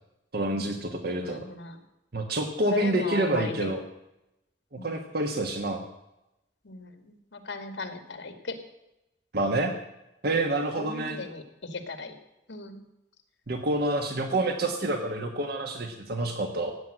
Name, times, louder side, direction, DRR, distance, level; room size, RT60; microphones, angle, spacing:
voice 1, 0.3-1.5 2.1-3.8 4.7-5.8 9.3-9.7 10.2-11.2 13.5-16.7, right 2 dB, 55° right, 4 dB, 1.3 m, -28 dB
voice 2, 1.2-1.8 2.7-3.7 4.8-5.0 6.6-8.5 10.8-11.4 11.7-12.2 12.5-12.8, left 3 dB, 75° left, 7 dB, 2.1 m, -37 dB
16.0 x 9.1 x 7.7 m, 0.91 s
head